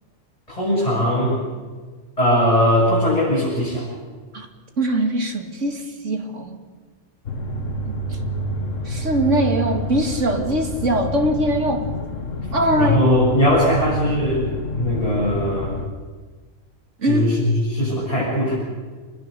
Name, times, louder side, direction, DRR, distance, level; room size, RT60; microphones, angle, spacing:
voice 1, 0.5-1.4 2.2-3.8 7.5-7.6 12.8-14.4 14.7-15.7 17.0-18.5, equal, 30° left, -8 dB, 8.0 m, -19 dB
voice 2, 4.8-6.6 8.9-11.8 12.5-13.0 17.0-17.2, right 1 dB, 70° right, 4 dB, 2.5 m, -21 dB
sound 1, 7.2-15.9, left 1 dB, 75° left, 1.8 m, -28 dB
26.5 x 21.0 x 6.8 m, 1.5 s
omnidirectional pair, 1.3 m